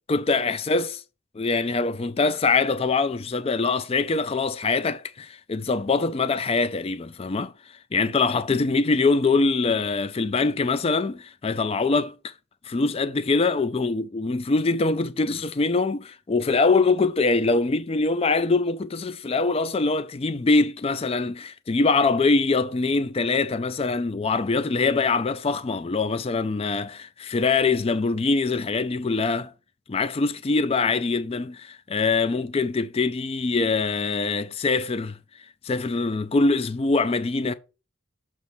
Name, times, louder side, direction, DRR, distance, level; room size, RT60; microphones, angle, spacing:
voice 1, 0.1-0.9 1.4-12.3 12.6-29.5 29.9-35.2 35.6-37.5, left 3 dB, 25° left, 0.3 m, -23 dB
7.0 x 3.0 x 6.0 m
head